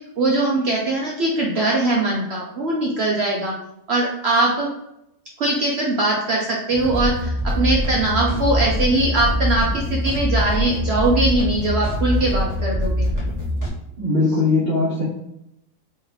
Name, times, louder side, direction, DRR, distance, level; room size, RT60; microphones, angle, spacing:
voice 1, 0.2-3.5 3.9-4.7 5.4-13.2, right 2 dB, 60° right, -2 dB, 0.7 m, -21 dB
sound 1, 6.7-13.7, equal, 20° right, 0.5 m, -23 dB
voice 2, 14.0-15.0, left 3 dB, 40° right, -8 dB, 1.1 m, -19 dB
3.1 x 2.9 x 3.8 m, 0.81 s
omnidirectional pair, 1.7 m